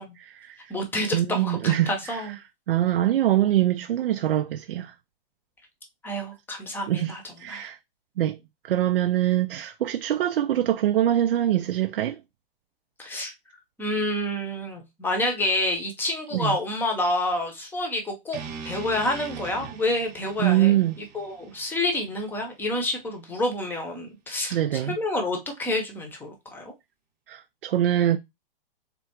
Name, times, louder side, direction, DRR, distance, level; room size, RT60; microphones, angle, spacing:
voice 1, 0.2-0.7 1.1-2.2 2.7-4.9 6.9-7.8 8.2-8.4 8.6-12.2 16.3-16.6 20.4-21.0 24.5-25.0 27.3-28.2, right 12 dB, 70° right, 0.5 m, -24 dB
voice 2, 0.7-2.4 6.0-7.2 7.5-7.7 13.0-13.3 13.8-18.4 18.6-20.8 21.1-26.7, left 1 dB, 5° left, 0.8 m, -28 dB
sound 1, 18.3-22.5, right 6 dB, 30° right, 0.8 m, -41 dB
3.6 x 3.4 x 2.9 m
hypercardioid pair, 135°, 29 cm